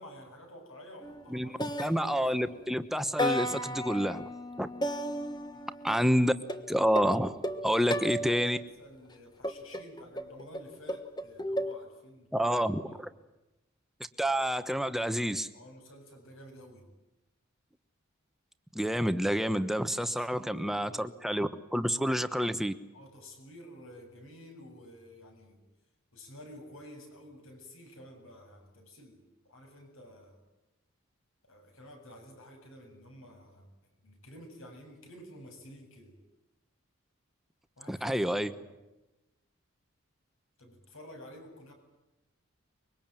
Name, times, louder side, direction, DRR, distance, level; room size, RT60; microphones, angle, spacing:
voice 1, 0.0-2.2 5.5-6.1 7.7-13.0 15.5-16.9 20.1-21.1 22.9-25.6 26.1-30.4 31.5-33.7 34.0-36.2 37.8-38.7 40.6-41.7, equal, 70° left, 4 dB, 7.6 m, -51 dB
sound 1, 1.0-1.3 1.6-2.6 3.2-6.0 6.5-8.6 9.4-11.7, equal, 20° left, 1.4 m, -34 dB
voice 2, 1.8-4.3 4.6-4.7 5.8-6.3 6.7-7.4 7.6-8.6 12.3-13.1 14.2-15.5 18.7-22.7 37.9-38.5, equal, ahead, 10 dB, 1.1 m, -28 dB
25.0 x 23.0 x 9.1 m, 1.0 s
head